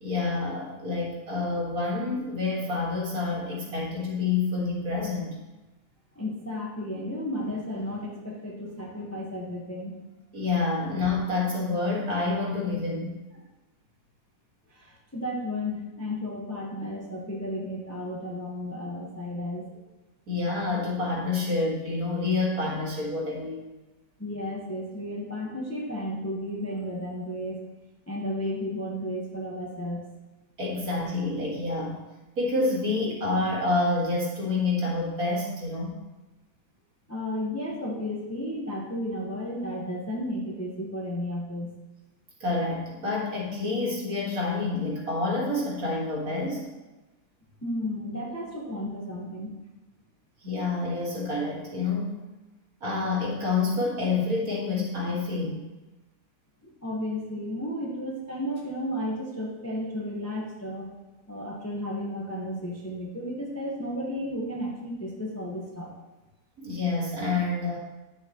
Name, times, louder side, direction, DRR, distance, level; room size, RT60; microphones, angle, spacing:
voice 1, 0.0-5.4 10.3-13.1 20.3-23.7 30.6-32.0 32.4-35.9 42.4-46.6 50.4-52.1 52.8-55.6 66.6-67.8, left 3 dB, 50° right, -3 dB, 2.2 m, -28 dB
voice 2, 6.1-9.9 14.7-19.6 24.2-27.6 28.1-30.0 37.1-41.7 47.6-49.5 56.6-60.9 61.3-65.9, left 1 dB, 10° left, -3 dB, 0.8 m, -33 dB
9.6 x 6.9 x 3.0 m, 1.1 s
omnidirectional pair, 1.9 m